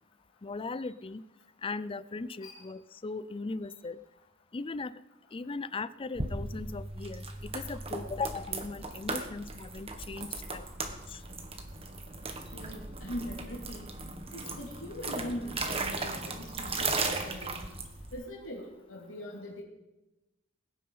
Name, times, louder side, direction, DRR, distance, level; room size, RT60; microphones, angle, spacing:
voice 1, 0.4-1.2 1.6-4.0 4.5-4.9 5.3-11.2, left 3 dB, 25° left, 16 dB, 0.4 m, -38 dB
sound 1, 6.1-18.2, right 3 dB, 30° right, 1.4 m, -37 dB
voice 2, 12.5-13.9 14.3-17.6 18.1-19.6, left 1 dB, 75° left, -2 dB, 2.7 m, -41 dB
20.5 x 9.4 x 5.6 m, 1.0 s
head